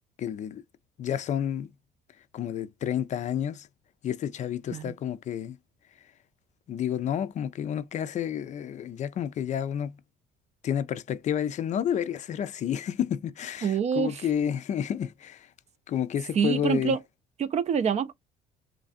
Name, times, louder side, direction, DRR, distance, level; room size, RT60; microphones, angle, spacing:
voice 1, 0.2-0.6 1.0-1.7 2.3-3.7 4.0-5.6 6.7-10.0 10.6-15.5 15.9-17.0, left 9 dB, 45° left, 0.4 m, -30 dB
voice 2, 13.6-14.2 16.4-17.0 17.4-18.1, right 7 dB, 40° right, 0.4 m, -26 dB
3.1 x 2.5 x 2.4 m
cardioid pair, 110°, 17 cm